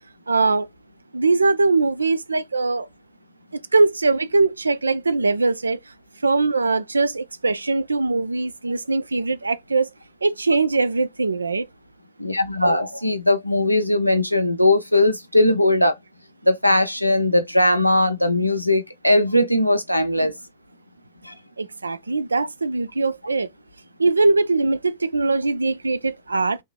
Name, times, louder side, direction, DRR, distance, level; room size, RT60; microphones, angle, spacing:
voice 1, 0.3-0.7 1.1-2.9 3.7-5.8 6.2-9.9 10.2-11.7 20.2-20.3 21.6-23.5 24.0-26.6, right 3 dB, 80° right, 0.3 m, -21 dB
voice 2, 12.2-15.9 16.4-20.3 21.2-21.3, left 1 dB, 90° left, 0.5 m, -19 dB
3.4 x 2.7 x 3.2 m
figure-of-eight pair, 90°, 0 cm